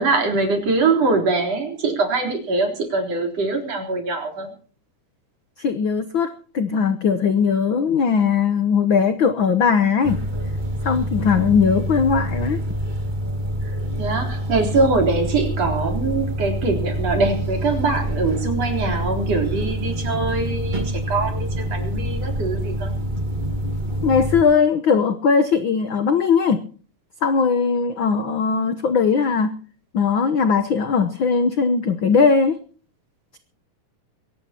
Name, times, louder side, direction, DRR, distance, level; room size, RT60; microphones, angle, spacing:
voice 1, 0.0-4.5 13.6-13.7 14.0-22.9, right 3 dB, 55° right, 3 dB, 4.8 m, -23 dB
voice 2, 5.6-10.2 10.8-12.6 24.0-26.6 27.2-29.5 29.9-32.6, left 5 dB, 70° left, 11 dB, 1.1 m, -19 dB
sound 1, 10.0-24.4, equal, 25° right, 1.1 m, -26 dB
22.5 x 18.0 x 2.9 m, 0.40 s
omnidirectional pair, 3.6 m